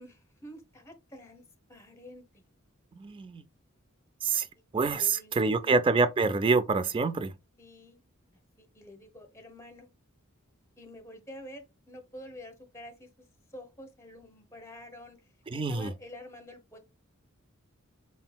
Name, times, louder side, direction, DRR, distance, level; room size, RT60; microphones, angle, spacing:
voice 1, 0.0-2.4 4.8-5.8 7.6-8.0 8.6-9.9 10.8-13.3 13.5-15.2 15.5-16.8, left 1 dB, 15° left, 0.9 m, -48 dB
voice 2, 3.0-3.4 4.2-4.5 4.7-7.3 15.5-15.9, right 4 dB, 25° right, 0.3 m, -26 dB
4.3 x 3.8 x 2.2 m
head